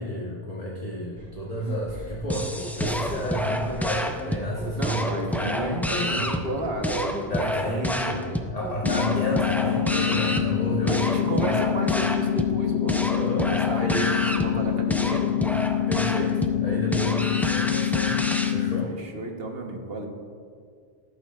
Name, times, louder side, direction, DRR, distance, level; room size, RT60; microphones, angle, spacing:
voice 1, 0.0-6.4 7.3-11.5 13.1-14.0 15.9-18.2 18.5-19.0, equal, 40° left, -4 dB, 1.2 m, -31 dB
sound 1, 1.2-7.7 8.1-9.9 10.2-10.9 11.2-11.8 12.2-12.8 13.2-15.1, equal, 20° right, 2.8 m, -45 dB
sound 2, 2.3-18.5, equal, 5° left, 0.3 m, -29 dB
voice 2, 4.8-8.5 10.9-13.0 13.4-15.3 18.9-20.1, right 2 dB, 70° right, 3 dB, 1.4 m, -33 dB
sound 3, 8.8-18.8, left 10 dB, 75° left, 0.8 m, -26 dB
13.5 x 11.5 x 2.4 m, 2.1 s
omnidirectional pair, 1.0 m